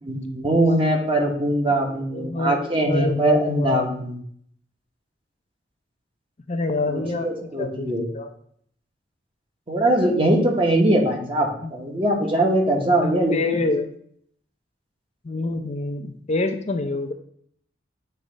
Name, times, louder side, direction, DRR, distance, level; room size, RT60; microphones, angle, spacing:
voice 1, 0.0-4.1 6.9-8.1 9.7-13.6, right 1 dB, 30° right, 2 dB, 1.1 m, -21 dB
voice 2, 1.7-3.9 6.5-8.3 11.6-11.7 13.0-13.9 15.2-17.1, left 2 dB, 35° left, 6 dB, 0.5 m, -27 dB
7.9 x 3.2 x 5.1 m, 0.64 s
head